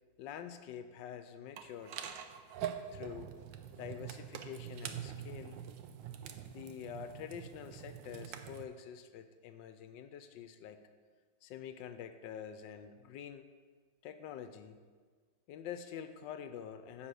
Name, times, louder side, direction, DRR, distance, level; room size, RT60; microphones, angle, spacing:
voice 1, 0.2-2.0 2.9-3.3 3.7-5.6 6.5-10.8 11.4-13.5 14.0-14.8 15.5-17.1, left 8 dB, 75° left, 9 dB, 1.3 m, -46 dB
sound 1, 1.6-8.6, right 9 dB, 75° right, 1.3 m, -44 dB
9.8 x 5.1 x 6.9 m, 1.5 s
omnidirectional pair, 2.1 m